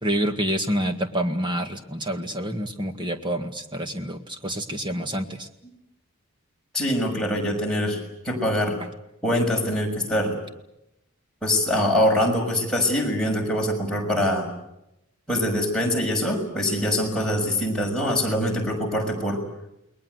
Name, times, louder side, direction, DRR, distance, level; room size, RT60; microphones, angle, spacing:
voice 1, 0.0-5.5, equal, 20° right, 6 dB, 1.9 m, -27 dB
voice 2, 6.7-8.8 9.2-10.4 11.4-14.5 15.3-19.4, left 1 dB, 5° left, -3 dB, 6.5 m, -24 dB
29.5 x 21.0 x 8.1 m, 0.87 s
head